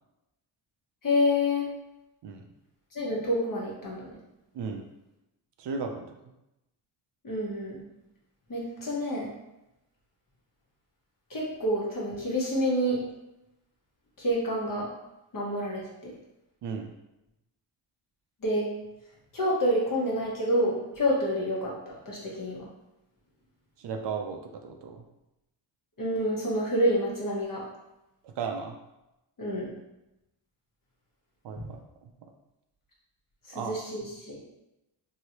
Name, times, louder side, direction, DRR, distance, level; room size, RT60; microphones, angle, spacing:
voice 1, 1.0-1.6 2.9-4.2 7.2-7.8 8.5-9.3 11.3-13.0 14.2-14.9 15.3-16.1 18.4-18.7 19.3-22.6 26.0-27.6 29.4-29.7 31.6-31.7 33.5-34.4, equal, 40° left, -4 dB, 1.1 m, -28 dB
voice 2, 5.6-6.3 16.6-16.9 23.8-25.0 28.2-28.8 31.4-31.8 33.5-33.7, right 5 dB, 60° right, 4 dB, 0.5 m, -35 dB
3.0 x 2.8 x 2.9 m, 0.92 s
cardioid pair, 105°, 48 cm